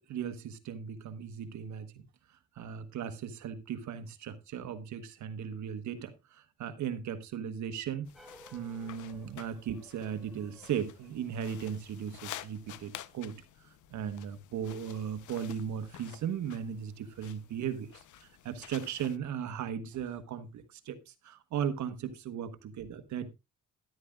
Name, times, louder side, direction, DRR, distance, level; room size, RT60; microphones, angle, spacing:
voice 1, 0.0-2.0 2.5-8.1 8.5-13.4 13.9-23.3, right 8 dB, 70° right, 1.2 m, -37 dB
sound 1, 8.0-19.2, left 13 dB, 75° left, 0.8 m, -51 dB
sound 2, 8.1-12.7, equal, ahead, 2.0 m, -59 dB
12.5 x 11.5 x 2.4 m
cardioid pair, 90°, 30 cm